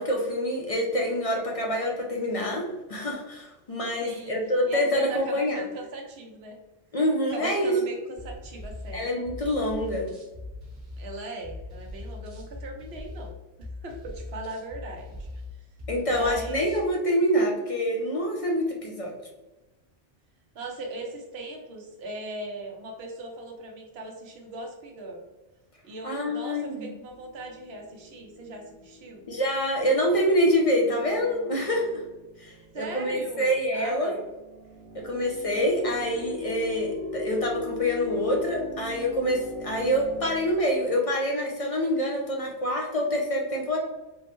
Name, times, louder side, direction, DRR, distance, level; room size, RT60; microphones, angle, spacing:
voice 1, 0.0-5.6 6.9-7.7 8.9-10.1 15.9-19.1 26.0-26.9 29.3-32.0 32.4-34.2 35.0-43.8, equal, 45° left, -1 dB, 0.5 m, -26 dB
voice 2, 4.0-4.4 4.7-6.6 7.3-9.1 11.0-13.4 13.8-15.7 16.1-16.6 20.5-25.2 25.8-29.2 32.7-34.3, right 2 dB, 70° right, 1 dB, 1.0 m, -39 dB
sound 1, 8.2-16.9, left 2 dB, 45° right, 1.3 m, -41 dB
sound 2, 27.1-40.5, left 2 dB, 25° left, 0.8 m, -41 dB
4.3 x 2.1 x 3.0 m, 1.1 s
omnidirectional pair, 1.1 m